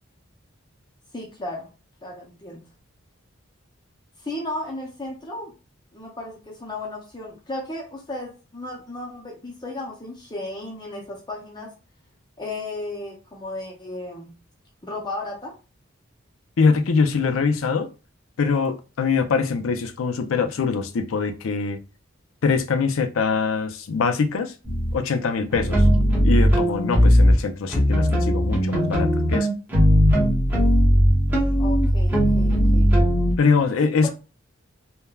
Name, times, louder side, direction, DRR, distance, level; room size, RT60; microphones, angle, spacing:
voice 1, 1.1-1.7 2.0-2.6 4.2-5.5 5.9-11.7 12.4-14.4 14.8-15.6 31.6-32.9 33.8-34.1, left 2 dB, 20° left, 0.5 m, -34 dB
voice 2, 16.6-17.9 18.4-21.8 22.4-24.5 24.9-25.9 26.2-29.5 33.4-34.1, left 5 dB, 90° left, 0.4 m, -23 dB
sound 1, 24.6-25.0 25.5-27.4 27.7-33.3, equal, 10° right, 0.8 m, -18 dB
3.3 x 2.1 x 2.2 m
head